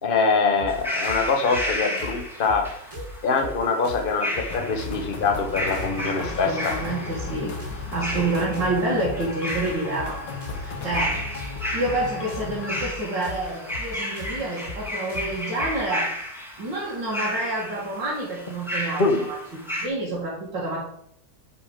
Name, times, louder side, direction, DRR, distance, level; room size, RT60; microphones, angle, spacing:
voice 1, 0.0-2.6 3.2-6.7 19.0-19.2, left 4 dB, 35° left, 4 dB, 1.2 m, -23 dB
sound 1, 0.6-16.0, left 2 dB, 20° right, 1.7 m, -39 dB
sound 2, 0.7-19.9, left 1 dB, ahead, 1.3 m, -33 dB
sound 3, 4.5-12.8, left 4 dB, 80° left, 1.9 m, -35 dB
voice 2, 6.2-7.5 7.9-10.2 10.6-11.1 11.7-16.1 16.6-20.8, right 2 dB, 85° right, -7 dB, 2.9 m, -28 dB
7.2 x 5.4 x 5.0 m, 0.71 s
omnidirectional pair, 1.9 m